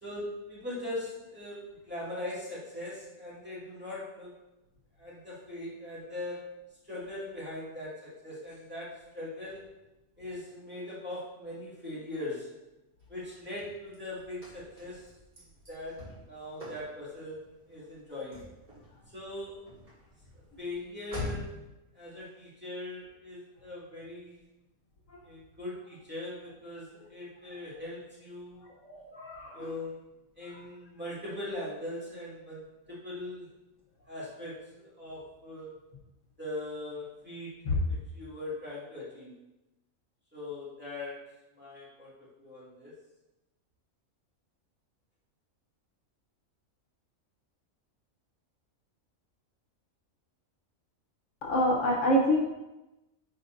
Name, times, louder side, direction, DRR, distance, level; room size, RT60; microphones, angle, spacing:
voice 1, 0.0-1.6 1.9-4.3 5.0-6.4 6.8-9.6 10.2-12.5 13.1-15.1 15.4-17.4 17.7-18.4 19.1-19.5 20.6-21.5 21.9-24.4 25.2-28.7 29.5-30.0 30.4-33.5 34.1-35.7 36.4-37.5 37.9-39.3 40.3-41.2 41.6-42.1 42.4-42.9, left 2 dB, 10° right, -10 dB, 2.1 m, -40 dB
Car / Slam, 13.0-21.7, left 2 dB, 40° right, 2.3 m, -46 dB
voice 2, 28.8-29.7 37.6-37.7 51.4-52.4, equal, 65° left, -1 dB, 1.2 m, -26 dB
8.9 x 4.1 x 2.6 m, 0.99 s
omnidirectional pair, 1.4 m